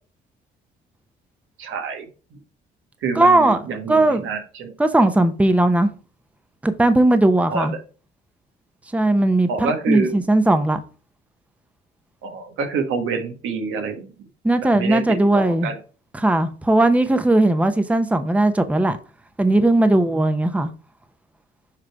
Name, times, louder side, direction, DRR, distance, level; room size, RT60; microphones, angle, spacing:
voice 1, 1.6-2.4 3.0-4.7 7.5-7.8 9.5-10.1 12.2-14.3 14.6-15.8 16.8-16.9, right 5 dB, 85° right, 1.4 m, -27 dB
voice 2, 3.2-3.6 3.9-4.2 4.8-5.9 6.6-7.7 8.9-10.8 14.4-15.7 16.2-19.0 19.4-20.7, right 2 dB, 5° right, 0.7 m, -18 dB
7.5 x 3.2 x 4.7 m
cardioid pair, 90°, 20 cm